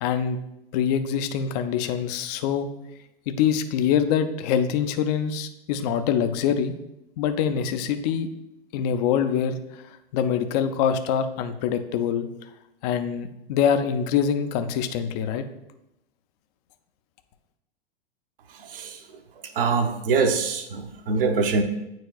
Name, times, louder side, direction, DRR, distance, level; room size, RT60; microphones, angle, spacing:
voice 1, 0.0-0.4 0.7-2.7 3.3-6.7 7.2-8.3 8.7-12.3 12.8-15.4, left 8 dB, 40° left, 9 dB, 0.5 m, -24 dB
voice 2, 19.6-21.6, right 4 dB, 65° right, 4 dB, 0.9 m, -23 dB
9.0 x 4.6 x 2.3 m, 0.88 s
figure-of-eight pair, 95°, 30 cm